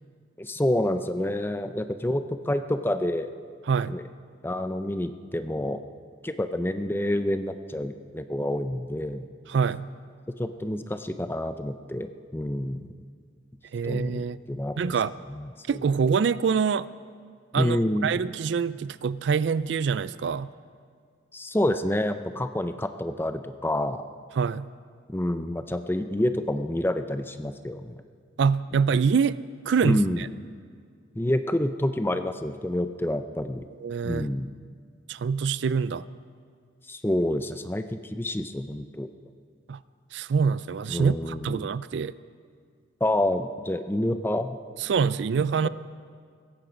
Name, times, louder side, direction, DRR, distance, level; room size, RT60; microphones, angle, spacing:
voice 1, 0.4-3.3 3.9-4.0 4.4-5.8 6.2-9.3 10.4-12.8 13.8-14.9 15.3-15.5 17.5-18.1 21.3-24.0 25.1-28.0 29.8-30.2 31.2-33.7 34.0-34.5 36.9-39.1 40.9-41.7 43.0-44.6, left 1 dB, 10° left, 9 dB, 0.5 m, -28 dB
voice 2, 9.5-9.9 13.7-14.4 14.8-15.1 15.7-16.9 17.5-20.5 24.4-24.7 28.4-29.4 29.7-30.3 33.8-34.3 35.1-36.0 39.7-39.8 40.1-42.1 44.8-45.7, right 6 dB, 60° right, 17 dB, 0.3 m, -25 dB
17.5 x 14.5 x 5.2 m, 2.1 s
head